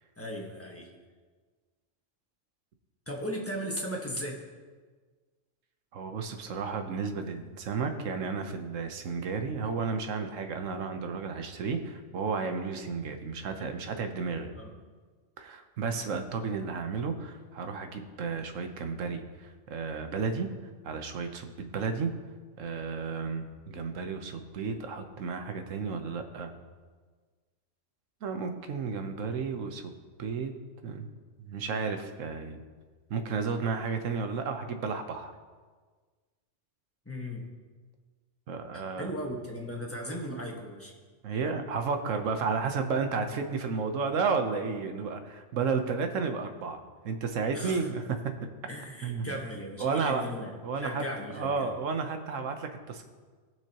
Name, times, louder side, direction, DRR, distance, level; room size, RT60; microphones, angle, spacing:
voice 1, 0.2-0.9 3.1-4.4 14.5-14.7 37.0-37.5 38.7-40.9 47.5-47.8 48.7-51.7, equal, 10° left, -1 dB, 1.3 m, -37 dB
voice 2, 5.9-14.5 15.4-20.5 20.8-22.1 22.6-26.5 28.2-29.9 30.2-30.5 30.8-31.1 31.4-32.6 33.1-35.3 38.5-39.1 41.2-48.2 49.0-49.4 49.8-50.2 50.6-51.0 51.3-53.1, right 5 dB, 85° right, 7 dB, 1.2 m, -32 dB
18.5 x 6.2 x 2.9 m, 1.5 s
omnidirectional pair, 1.3 m